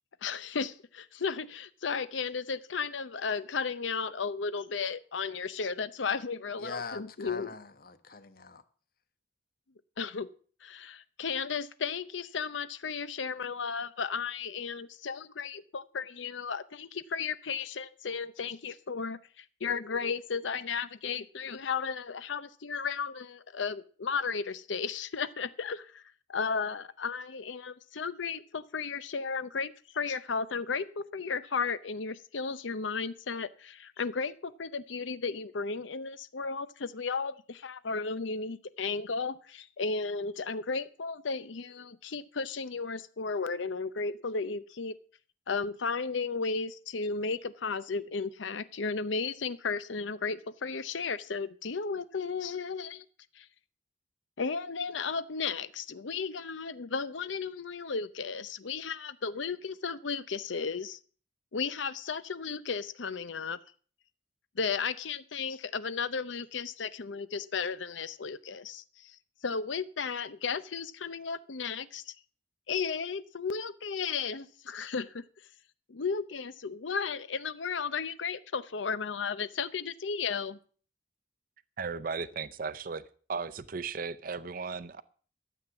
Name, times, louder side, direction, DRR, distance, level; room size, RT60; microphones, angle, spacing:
voice 1, 0.2-7.5 10.0-10.3 10.6-26.0 26.3-44.9 45.5-53.0 53.3-53.5 54.4-61.0 61.5-63.6 64.6-69.2 69.4-72.1 72.7-75.2 75.9-80.6, left 5 dB, 85° left, 0.7 m, -34 dB
voice 2, 6.6-8.6, left 4 dB, 50° left, 1.1 m, -43 dB
voice 3, 81.8-83.0 83.3-85.0, right 5 dB, 50° right, 0.6 m, -36 dB
13.0 x 7.9 x 7.1 m
head